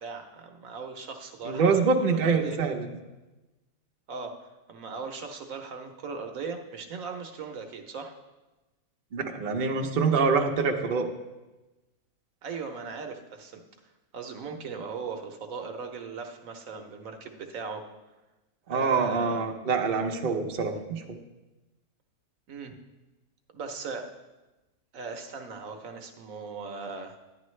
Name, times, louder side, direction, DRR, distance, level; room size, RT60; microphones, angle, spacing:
voice 1, 0.0-2.6 4.1-8.1 12.4-13.6 14.1-17.8 18.7-19.5 22.5-22.8 23.5-24.1 24.9-27.2, right 4 dB, 65° right, 5 dB, 1.1 m, -38 dB
voice 2, 1.5-2.9 9.1-11.1 18.7-21.2, right 4 dB, 45° right, 2 dB, 0.8 m, -25 dB
10.5 x 10.0 x 3.2 m, 1.1 s
omnidirectional pair, 1.6 m